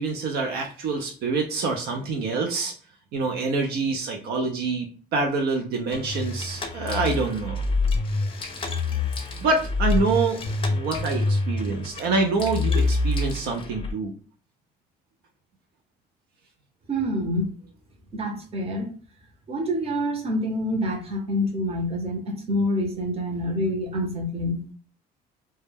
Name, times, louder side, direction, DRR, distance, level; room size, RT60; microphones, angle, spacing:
voice 1, 0.0-2.7 3.1-7.6 9.4-14.1, right 3 dB, 70° right, 2 dB, 0.5 m, -26 dB
sound 1, 5.9-13.9, left 3 dB, 30° left, 0.5 m, -26 dB
voice 2, 16.9-17.5 18.1-18.9 19.5-24.6, equal, 35° right, 3 dB, 0.7 m, -27 dB
2.2 x 2.1 x 3.1 m, 0.40 s
cardioid pair, 110°, 17 cm